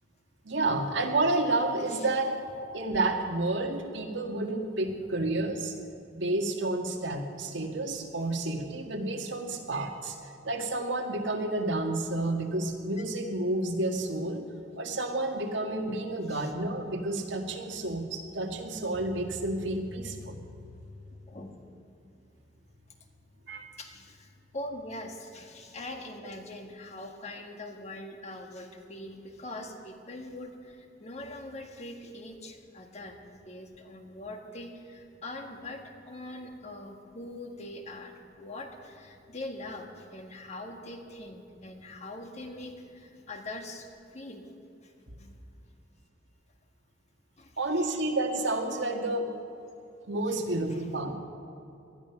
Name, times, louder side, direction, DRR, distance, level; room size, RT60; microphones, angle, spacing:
voice 1, 0.5-2.4 2.7-5.8 6.1-10.2 10.4-14.5 14.8-20.4 23.5-23.6 47.6-49.3 50.1-51.2, right 2 dB, 80° right, 3 dB, 1.8 m, -30 dB
voice 2, 23.8-33.2 33.4-44.4 44.8-44.9 45.2-45.6 47.4-47.5 50.7-50.9, left 1 dB, 35° left, 3 dB, 1.6 m, -42 dB
19.0 x 12.5 x 6.0 m, 2.8 s
head